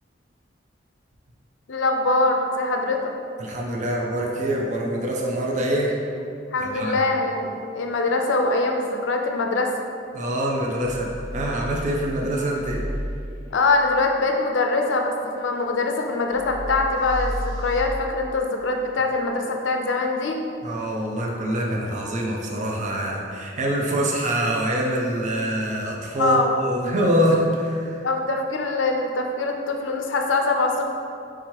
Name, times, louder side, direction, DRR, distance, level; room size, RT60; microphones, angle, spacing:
voice 1, 1.7-3.1 6.5-9.7 13.5-20.4 26.2-26.6 28.0-30.9, left 3 dB, 75° left, 2 dB, 0.5 m, -23 dB
voice 2, 3.4-6.0 6.6-7.0 10.1-11.1 11.3-12.8 20.6-28.0, right 1 dB, 40° right, -1 dB, 0.5 m, -25 dB
sound 1, 10.8-12.9 16.3-17.8, equal, 80° right, 1.2 m, -33 dB
3.6 x 2.9 x 4.5 m, 2.4 s
head